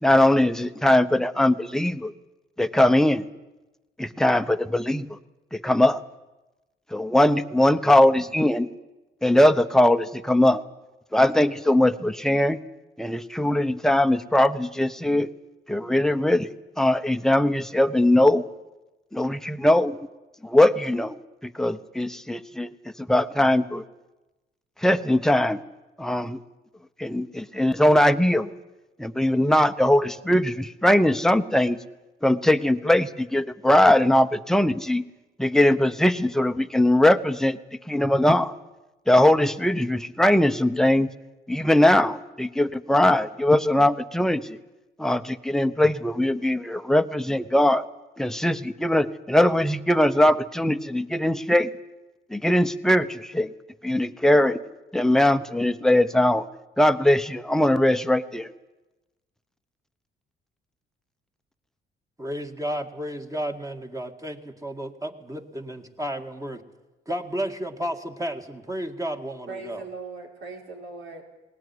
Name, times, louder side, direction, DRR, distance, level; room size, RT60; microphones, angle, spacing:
voice 1, 0.0-2.1 2.6-3.2 4.0-5.1 5.5-6.0 6.9-8.7 9.2-10.6 11.1-12.6 13.0-15.3 15.7-16.5 16.8-18.5 19.1-20.0 20.4-21.2 21.4-22.7 23.1-23.8 24.8-25.6 26.0-26.4 27.0-28.5 29.0-31.8 32.2-35.0 35.4-37.6 37.9-38.5 39.1-41.1 41.5-44.6 45.0-47.8 48.2-51.7 52.3-53.5 53.8-54.6 54.9-56.5 56.8-58.5, left 1 dB, ahead, 9 dB, 1.0 m, -20 dB
voice 2, 62.2-66.6 67.1-69.9, equal, 15° right, 4 dB, 2.0 m, -32 dB
voice 3, 69.5-71.2, right 3 dB, 80° right, 1 dB, 5.0 m, -39 dB
19.5 x 19.0 x 9.8 m, 1.1 s
cardioid pair, 90°, 20 cm